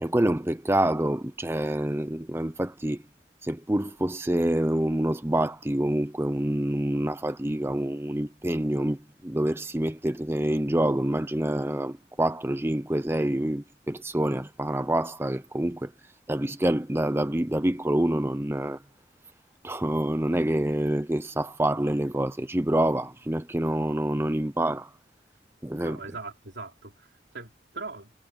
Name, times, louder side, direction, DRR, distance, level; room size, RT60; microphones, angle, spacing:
voice 1, 0.0-3.0 3.4-15.9 16.3-18.8 19.6-24.9 25.6-26.0, right 1 dB, 15° right, 0.6 m, -27 dB
voice 2, 25.8-28.1, right 3 dB, 80° right, 3.0 m, -40 dB
head